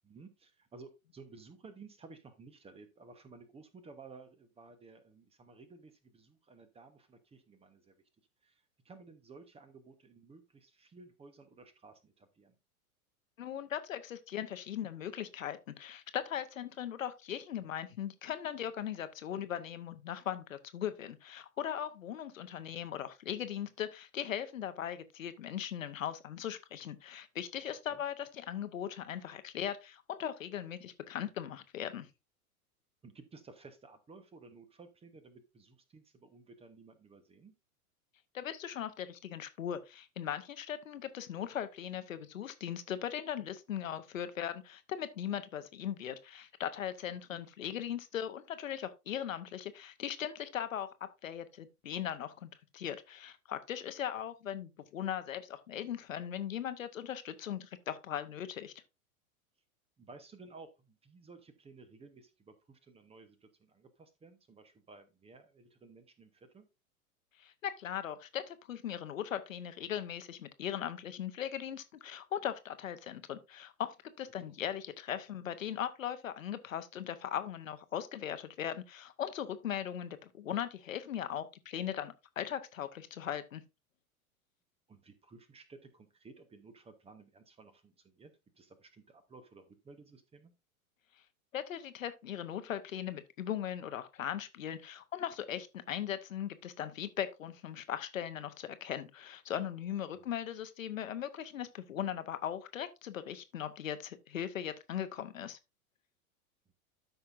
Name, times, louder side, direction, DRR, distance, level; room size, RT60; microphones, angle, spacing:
voice 1, 0.0-8.0 8.4-12.6 27.9-28.0 33.0-37.5 47.3-47.4 60.0-66.7 74.5-74.6 84.9-90.5 100.1-100.3, right 4 dB, 15° right, 1.1 m, -55 dB
voice 2, 13.4-32.1 38.3-50.9 51.2-58.7 67.4-83.6 91.5-105.6, left 10 dB, 65° left, 1.0 m, -39 dB
12.5 x 5.7 x 2.6 m
figure-of-eight pair, 95°, 43 cm